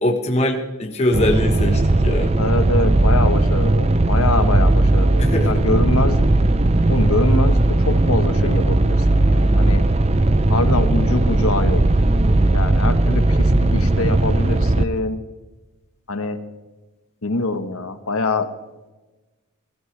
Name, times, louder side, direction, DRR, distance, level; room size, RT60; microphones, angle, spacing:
voice 1, 0.0-2.3 5.2-5.5, left 1 dB, 30° left, 3 dB, 1.2 m, -22 dB
sound 1, 1.1-14.8, right 2 dB, 30° right, 0.5 m, -17 dB
voice 2, 2.4-6.3 6.9-9.8 10.5-11.8 12.5-15.2 16.1-16.4 17.2-18.5, left 2 dB, 85° left, 9 dB, 1.3 m, -24 dB
21.5 x 13.5 x 3.3 m, 1.1 s
head